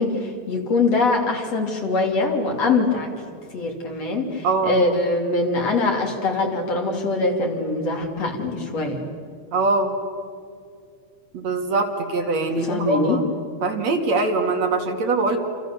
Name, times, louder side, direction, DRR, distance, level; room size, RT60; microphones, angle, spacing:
voice 1, 0.0-3.1 3.5-9.0 12.5-13.2, left 3 dB, 55° left, 2 dB, 4.1 m, -23 dB
voice 2, 9.5-9.9 11.3-13.2 13.6-15.4, right 3 dB, 65° right, 3 dB, 3.5 m, -22 dB
28.5 x 28.0 x 7.0 m, 2.3 s
omnidirectional pair, 3.4 m